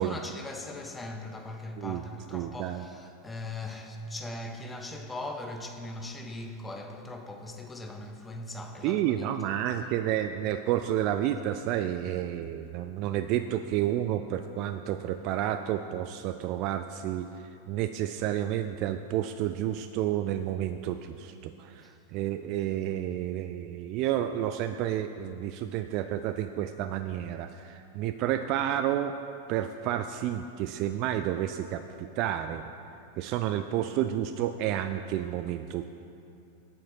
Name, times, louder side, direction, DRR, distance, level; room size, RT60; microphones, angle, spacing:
voice 1, 0.0-9.1 9.8-9.9 21.8-21.9, left 2 dB, 10° left, 0.8 m, -40 dB
voice 2, 2.3-2.8 8.8-17.3 17.7-29.2 29.5-32.6 33.2-35.8, right 11 dB, 40° right, 0.3 m, -30 dB
8.5 x 7.7 x 5.7 m
figure-of-eight pair, 90°, 0 cm